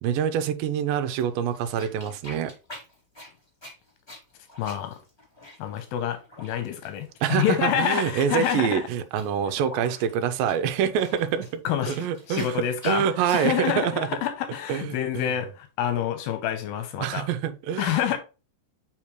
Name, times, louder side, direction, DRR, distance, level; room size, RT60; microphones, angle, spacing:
voice 1, 0.0-2.5 7.2-14.1 14.7-15.3 17.0-18.0, right 8 dB, 80° right, 2.3 m, -26 dB
sound 1, 1.1-13.4, left 1 dB, 10° left, 1.6 m, -46 dB
voice 2, 4.6-5.0 5.6-8.8 11.6-11.9 12.3-13.1 13.3-17.2 17.8-18.2, left 10 dB, 85° left, 2.5 m, -27 dB
7.2 x 4.9 x 3.1 m
omnidirectional pair, 4.2 m